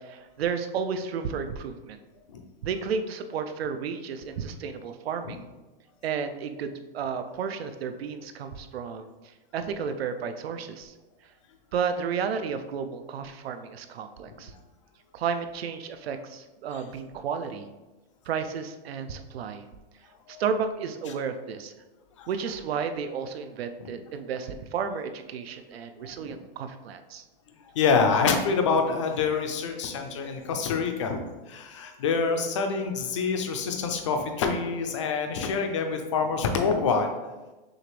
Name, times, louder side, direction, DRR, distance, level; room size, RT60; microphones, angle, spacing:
voice 1, 0.0-2.0 2.6-5.4 6.0-9.1 9.5-10.9 11.7-14.5 15.1-17.7 18.3-19.6 20.3-21.7 22.3-27.2, right 6 dB, 85° right, 8 dB, 0.6 m, -32 dB
voice 2, 26.0-26.3 27.7-37.1, left 5 dB, 30° left, 5 dB, 0.4 m, -26 dB
6.3 x 2.5 x 3.2 m, 1.1 s
supercardioid pair, 175°, 30 cm